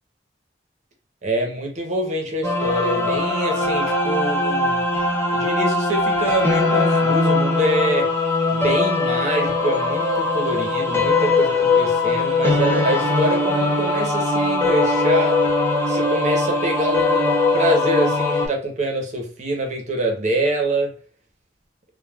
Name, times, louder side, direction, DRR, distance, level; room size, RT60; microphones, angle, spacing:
voice 1, 1.2-4.8 5.3-8.1 8.5-15.4 15.9-20.9, right 1 dB, 40° right, 0.7 m, -25 dB
sound 1, 2.4-18.5, left 3 dB, 15° left, 0.5 m, -20 dB
3.3 x 2.2 x 2.2 m
head